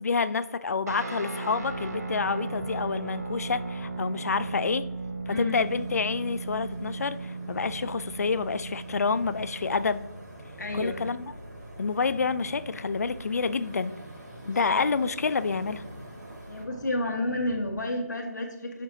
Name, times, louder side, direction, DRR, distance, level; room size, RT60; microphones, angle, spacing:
voice 1, 0.0-4.8 5.3-10.0 10.7-11.3 11.8-13.9 14.5-15.8, left 4 dB, 60° left, 13 dB, 0.4 m, -28 dB
Guitar, 0.9-10.0, right 3 dB, 65° right, 1.2 m, -36 dB
Purr, 1.6-17.7, right 1 dB, 35° right, 1.6 m, -47 dB
voice 2, 5.3-5.6 10.6-11.1 14.4-14.8 16.5-18.8, left 1 dB, 85° left, 2 dB, 1.3 m, -31 dB
sound 1, 5.5-16.6, right 1 dB, 90° right, 2.8 m, -48 dB
8.7 x 6.0 x 2.7 m, 0.90 s
figure-of-eight pair, 170°, 9 cm